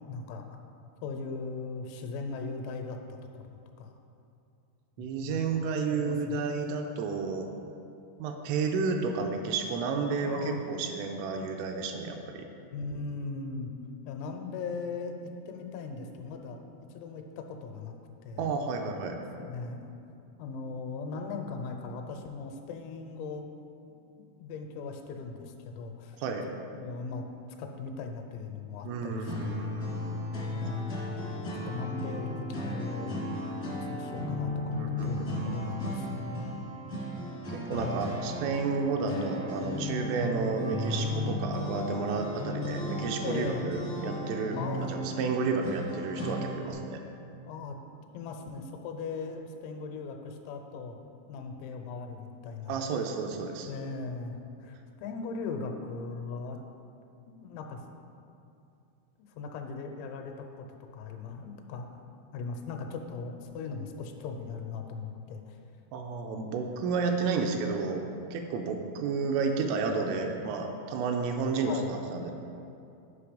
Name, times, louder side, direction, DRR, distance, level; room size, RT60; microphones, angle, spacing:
voice 1, 0.1-0.5 1.0-3.0 3.3-3.5 3.8-3.9 5.0-5.6 5.9-6.4 10.1-10.6 12.7-13.7 14.0-16.6 16.9-17.9 18.2-18.5 19.4-19.9 20.4-23.5 24.4-26.2 26.7-27.3 27.6-29.3 29.6-29.8 30.5-30.9 31.3-33.2 33.8-36.7 37.7-38.1 43.2-43.7 44.6-44.9 47.5-47.8 48.1-51.0 51.3-52.8 53.7-56.6 57.3-57.8 59.4-60.7 60.9-62.0 62.3-65.6 71.6-71.9, left 4 dB, 85° left, 5 dB, 3.4 m, -39 dB
voice 2, 5.0-7.5 8.2-12.5 18.4-19.2 26.2-26.5 28.8-30.2 34.8-35.5 37.5-44.6 44.9-47.0 52.7-53.7 65.9-68.0 68.3-72.3, right 4 dB, 85° right, 3 dB, 3.1 m, -31 dB
sound 1, 29.3-46.7, left 1 dB, 65° left, 0.8 m, -35 dB
9.8 x 5.2 x 5.1 m, 2.6 s
omnidirectional pair, 5.9 m